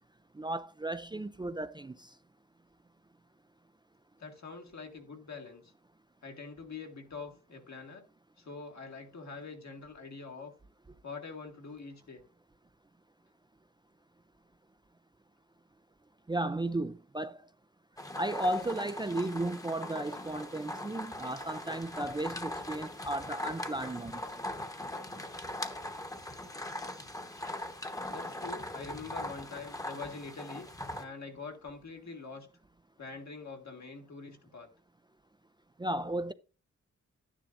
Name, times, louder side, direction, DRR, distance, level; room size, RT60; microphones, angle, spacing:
voice 1, 0.3-2.1 16.3-17.5 18.2-24.2 35.8-36.3, right 1 dB, 15° right, 0.4 m, -34 dB
voice 2, 4.2-5.7 6.2-8.0 8.4-10.5 11.0-12.3 28.1-30.7 31.0-32.5 33.0-34.7, left 4 dB, 65° left, 2.1 m, -44 dB
sound 1, 18.0-31.0, left 1 dB, 10° left, 1.1 m, -40 dB
12.0 x 10.0 x 2.6 m
wide cardioid pair, 125°, 30 cm